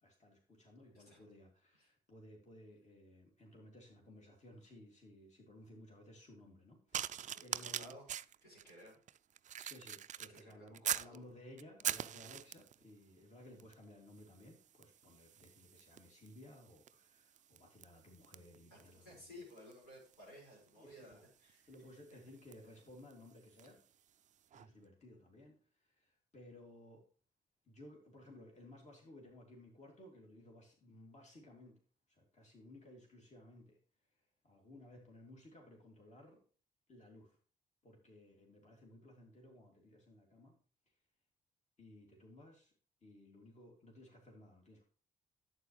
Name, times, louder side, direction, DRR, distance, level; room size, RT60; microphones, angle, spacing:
voice 1, 0.0-8.0 9.6-19.3 20.8-21.3 21.7-23.8 24.5-27.0 27.6-31.8 32.1-33.8 34.1-36.4 36.9-37.4 37.8-40.6 40.9-41.0 41.8-42.7 43.0-44.8, left 1 dB, 40° left, 0 dB, 2.7 m, -58 dB
sound 1, 6.9-11.2 11.6-12.8 13.6-13.8 14.1-23.8 24.5-24.7, right 10 dB, 40° right, 0.4 m, -45 dB
voice 2, 7.3-8.0 8.4-9.0 10.2-11.2 18.7-21.7, equal, 85° left, -5 dB, 5.3 m, -56 dB
11.5 x 8.1 x 3.2 m, 0.41 s
hypercardioid pair, 40°, 19 cm